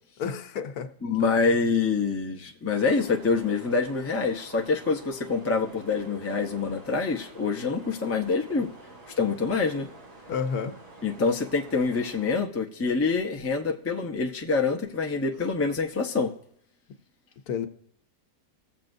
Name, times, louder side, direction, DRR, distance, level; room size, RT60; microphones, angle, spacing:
voice 1, 0.2-0.9 10.3-10.8 17.5-17.7, left 6 dB, 75° left, 1.3 m, -30 dB
voice 2, 1.0-8.7 9.1-9.9 11.0-16.3, left 4 dB, 20° left, 0.4 m, -26 dB
sound 1, 2.7-12.3, right 2 dB, 55° right, 2.4 m, -49 dB
20.0 x 7.5 x 2.6 m
omnidirectional pair, 1.7 m